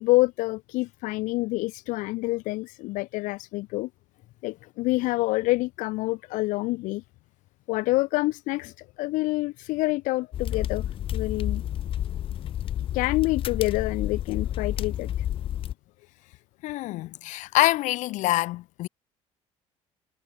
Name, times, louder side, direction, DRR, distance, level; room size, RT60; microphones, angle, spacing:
voice 1, 0.0-3.9 4.4-7.0 7.7-10.8 11.1-11.6 12.9-15.1, left 21 dB, 85° left, 1.1 m, -27 dB
sound 1, 10.3-15.7, left 11 dB, 45° left, 1.3 m, -30 dB
voice 2, 16.6-18.9, left 18 dB, 70° left, 2.8 m, -25 dB
cardioid pair, 165°, 13 cm